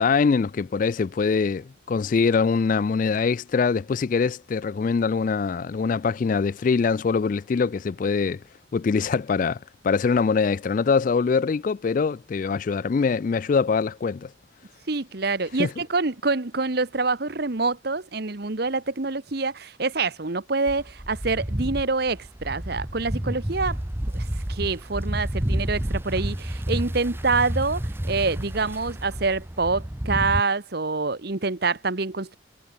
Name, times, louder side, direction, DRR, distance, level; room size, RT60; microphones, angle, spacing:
voice 1, 0.0-8.4 8.7-9.6 9.8-14.3 15.6-15.7, left 5 dB, 40° left, 0.3 m, -23 dB
voice 2, 14.9-23.8 24.0-32.4, right 3 dB, 50° right, 1.1 m, -26 dB
sound 1, 20.7-30.4, right 1 dB, 10° right, 0.7 m, -30 dB
head